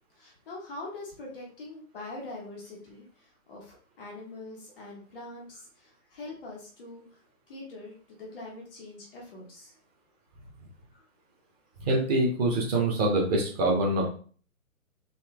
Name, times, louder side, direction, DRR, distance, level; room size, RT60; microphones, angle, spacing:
voice 1, 0.1-7.0 7.5-9.7 10.9-11.0, left 2 dB, 5° left, -15 dB, 0.5 m, -43 dB
voice 2, 11.8-14.1, right 2 dB, 25° right, -1 dB, 1.3 m, -25 dB
4.3 x 3.0 x 3.7 m, 0.43 s
figure-of-eight pair, 135°, 44 cm